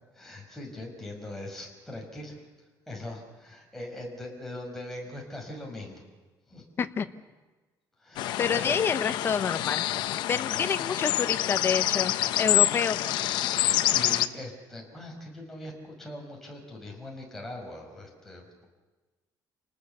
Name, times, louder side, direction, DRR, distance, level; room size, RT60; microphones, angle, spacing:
voice 1, 0.1-2.4 2.9-6.0 6.5-6.6 8.0-8.7 10.4-10.7 12.6-12.8 13.9-18.7, left 1 dB, 5° left, -1 dB, 5.9 m, -41 dB
sound 1, 8.2-14.3, left 13 dB, 80° left, 0.9 m, -27 dB
voice 2, 8.4-9.8 10.3-13.1, left 6 dB, 30° left, 9 dB, 1.0 m, -28 dB
30.0 x 19.5 x 7.0 m, 1.2 s
cardioid pair, 160°, 8 cm